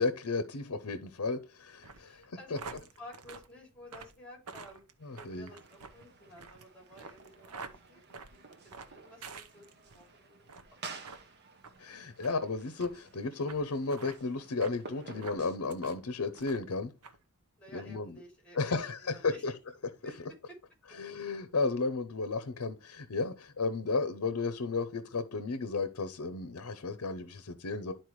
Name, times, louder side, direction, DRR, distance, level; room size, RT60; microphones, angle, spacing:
voice 1, 0.0-2.4 5.0-5.5 11.8-16.9 17.7-18.1 18.5-19.5 21.0-27.9, left 3 dB, 70° left, 0.7 m, -33 dB
sound 1, 1.8-10.0 10.4-10.7 11.0-11.2 11.6-11.8 12.2-12.4 12.8-12.9 13.5-13.6 13.9-14.2 14.6-14.8 15.2-16.0 16.3-16.7 17.0-17.2, right 4 dB, 90° right, 0.8 m, -48 dB
voice 2, 1.9-4.8 5.2-8.0 8.3-10.4 17.6-19.4 20.0-20.1 20.5-20.6 20.9-21.0, left 1 dB, 5° left, 3.1 m, -53 dB
sound 2, 5.0-15.6, right 4 dB, 45° right, 1.0 m, -52 dB
11.5 x 4.4 x 3.1 m
head